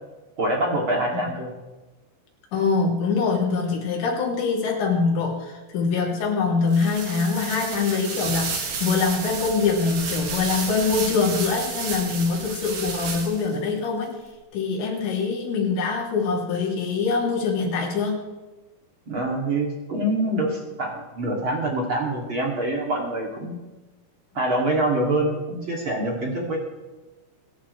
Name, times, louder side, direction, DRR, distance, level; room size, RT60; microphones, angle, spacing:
voice 1, 0.4-1.5 19.1-23.6 24.3-26.6, right 1 dB, 35° right, -1 dB, 2.3 m, -25 dB
voice 2, 2.5-14.1 14.5-18.2, left 4 dB, 60° left, -2 dB, 5.1 m, -24 dB
sound 1, 6.7-13.6, right 5 dB, 55° right, 4.0 m, -32 dB
24.5 x 11.5 x 3.3 m, 1.2 s
omnidirectional pair, 6.0 m